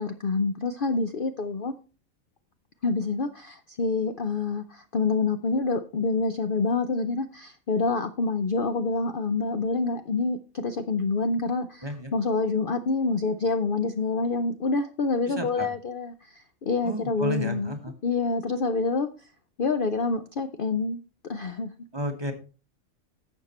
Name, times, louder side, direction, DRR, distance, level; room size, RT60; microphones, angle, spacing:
voice 1, 0.0-1.7 2.8-17.7 18.0-19.3 19.6-21.7, left 4 dB, 50° left, 9 dB, 0.7 m, -27 dB
voice 2, 15.3-15.7 16.8-17.9 21.9-22.3, right 1 dB, 20° right, 5 dB, 1.3 m, -32 dB
11.5 x 7.4 x 4.2 m, 0.34 s
omnidirectional pair, 1.5 m